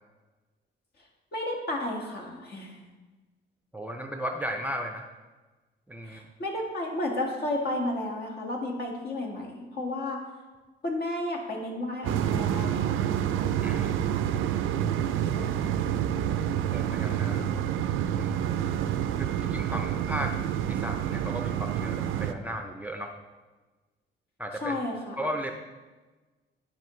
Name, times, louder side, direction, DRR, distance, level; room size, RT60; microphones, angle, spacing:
voice 1, 1.3-2.8 6.0-10.2 10.8-12.9 15.3-15.8 24.5-25.2, left 1 dB, 55° left, 0 dB, 1.9 m, -32 dB
voice 2, 3.7-5.1 5.9-6.3 13.6-15.0 16.7-17.5 18.2-18.6 19.2-20.4 20.7-23.1 24.4-24.7 25.2-25.5, equal, 10° right, 4 dB, 0.6 m, -36 dB
sound 1, 12.0-22.3, right 10 dB, 85° right, 0.5 m, -28 dB
11.5 x 5.2 x 3.2 m, 1.2 s
cardioid pair, 90°, 20 cm